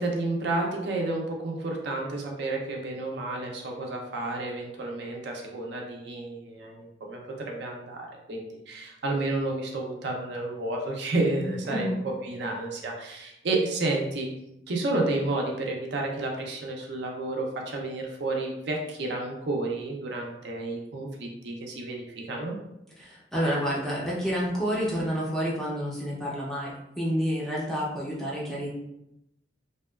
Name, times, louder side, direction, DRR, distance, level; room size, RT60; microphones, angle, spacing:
voice 1, 0.0-7.2 7.5-14.3 14.7-22.6, right 2 dB, 55° right, 0 dB, 0.4 m, -31 dB
voice 2, 11.4-12.0 23.0-28.7, equal, ahead, -6 dB, 0.4 m, -29 dB
2.7 x 2.2 x 2.2 m, 0.84 s
head